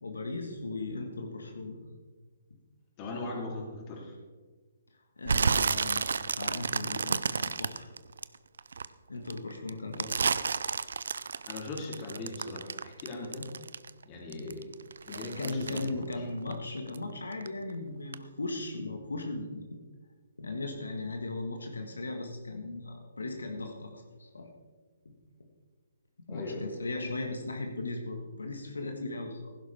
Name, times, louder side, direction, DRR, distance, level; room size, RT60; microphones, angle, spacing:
voice 1, 0.0-1.8 5.2-6.1 6.4-7.9 9.1-10.2 15.1-19.8 20.4-24.5 25.1-25.2 26.3-29.5, left 2 dB, 80° left, 3 dB, 1.7 m, -37 dB
voice 2, 3.0-4.1 11.5-13.5 14.0-14.7 15.1-16.2 26.3-26.8, left 2 dB, 30° left, -1 dB, 3.3 m, -39 dB
sound 1, 5.2-8.8 9.3-14.0 14.3-17.0 17.3-17.7 18.1-18.2, right 5 dB, 70° right, 0.5 m, -31 dB
15.5 x 11.5 x 3.6 m, 1.4 s
figure-of-eight pair, 140°, 0 cm